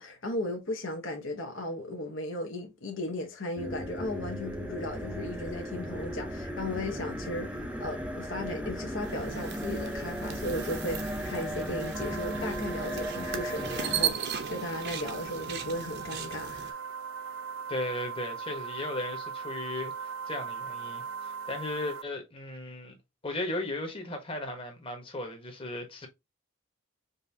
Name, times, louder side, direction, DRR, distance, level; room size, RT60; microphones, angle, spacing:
voice 1, 0.0-16.8, left 1 dB, 60° left, 0.9 m, -36 dB
sound 1, 3.6-14.1, equal, 5° right, 0.6 m, -36 dB
sound 2, 9.0-16.7, right 8 dB, 50° right, 0.7 m, -37 dB
sound 3, 11.9-22.0, right 6 dB, 75° right, 0.3 m, -40 dB
voice 2, 17.7-23.0 23.2-26.1, left 2 dB, 25° left, 1.2 m, -36 dB
5.3 x 2.6 x 2.7 m
head